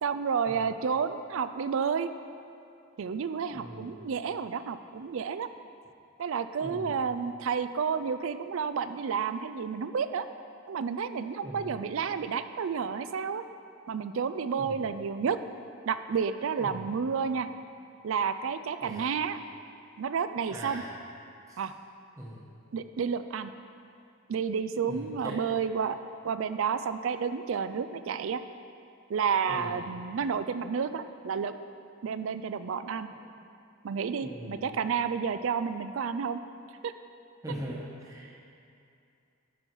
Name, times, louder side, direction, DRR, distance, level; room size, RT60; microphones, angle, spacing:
voice 1, 0.0-2.1 3.0-5.5 6.2-10.2 10.7-13.4 13.9-15.4 15.9-17.5 18.0-19.4 20.0-20.8 21.6-21.7 22.7-23.5 24.3-26.0 26.2-28.4 29.1-31.5 32.0-33.1 33.8-36.4 36.8-36.9, right 6 dB, 70° right, 11 dB, 0.4 m, -30 dB
voice 2, 3.5-4.0 6.6-6.9 11.4-11.8 14.6-14.8 16.6-16.9 18.8-19.1 20.5-20.9 21.5-21.6 22.2-22.4 24.9-25.4 29.4-29.8 33.2-33.3 34.2-34.8 37.4-38.3, right 1 dB, 15° right, -4 dB, 1.1 m, -41 dB
12.0 x 5.5 x 4.6 m, 2.5 s
head